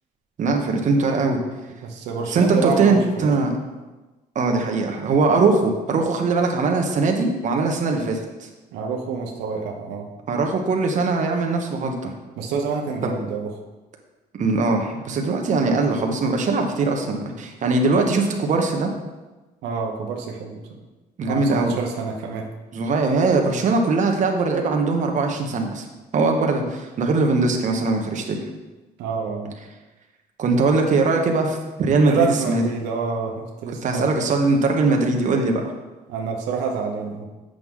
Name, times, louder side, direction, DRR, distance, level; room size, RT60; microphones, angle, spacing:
voice 1, 0.4-1.4 2.3-3.5 4.3-8.5 10.3-12.1 13.0-13.1 14.3-18.9 21.2-21.7 22.7-25.8 26.1-28.4 30.4-32.6 33.8-35.6, right 3 dB, 45° right, 2 dB, 1.2 m, -21 dB
voice 2, 1.8-3.3 8.7-10.1 12.4-13.5 19.6-20.8 21.2-22.5 29.0-29.6 32.0-34.2 36.1-37.3, right 5 dB, 90° right, 1 dB, 1.0 m, -27 dB
7.7 x 6.4 x 3.7 m, 1.1 s
cardioid pair, 110°, 17 cm